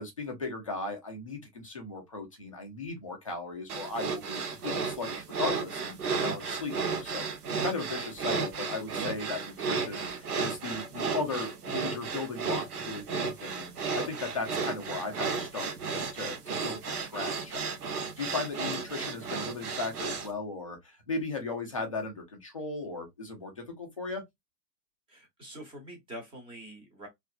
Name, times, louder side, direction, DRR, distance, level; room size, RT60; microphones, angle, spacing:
voice 1, 0.0-7.3 7.6-24.2, left 3 dB, 25° left, 0.3 m, -37 dB
sound 1, 3.7-20.3, right 5 dB, 65° right, 0.8 m, -33 dB
voice 2, 25.1-27.1, right 1 dB, 10° right, 0.7 m, -45 dB
2.6 x 2.4 x 2.2 m
figure-of-eight pair, 115°, 49 cm